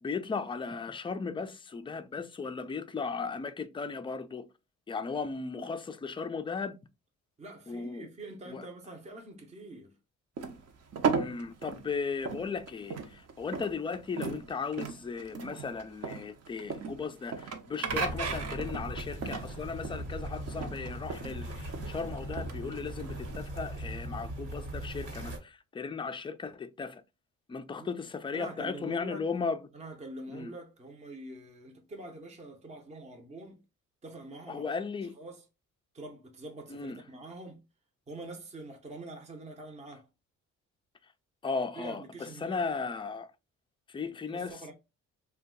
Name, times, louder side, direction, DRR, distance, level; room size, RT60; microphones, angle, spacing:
voice 1, 0.0-4.5 4.9-6.8 7.7-8.1 8.5-8.7 11.2-27.0 27.5-29.6 30.3-30.5 34.5-35.1 36.7-37.0 41.4-43.3 43.9-44.7, left 5 dB, 15° left, 0.3 m, -36 dB
voice 2, 7.4-9.9 27.8-27.9 28.3-29.3 29.7-33.6 34.0-34.7 35.1-35.5 35.9-37.6 38.1-40.1 41.7-42.6 44.0-44.7, right 2 dB, 25° right, 0.7 m, -45 dB
sound 1, 10.4-23.4, right 5 dB, 55° right, 0.8 m, -36 dB
sound 2, 17.9-25.4, right 1 dB, 80° right, 1.3 m, -39 dB
2.6 x 2.2 x 3.7 m
cardioid pair, 90°, 30 cm